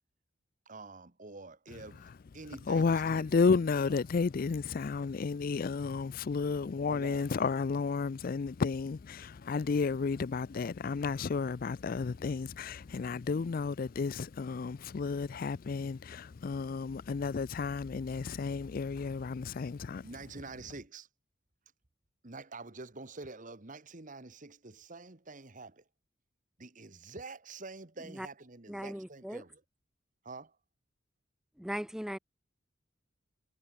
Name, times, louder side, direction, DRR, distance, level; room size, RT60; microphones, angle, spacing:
voice 1, 0.7-2.0 2.3-3.6 3.9-4.0 6.9-7.3 20.0-21.1 22.2-25.8 26.6-29.6 30.2-30.5, right 3 dB, 40° right, 1.5 m, -47 dB
voice 2, 2.7-20.1, left 4 dB, 45° left, 0.4 m, -32 dB
voice 3, 28.7-29.4 31.6-32.2, equal, 5° right, 0.6 m, -38 dB
head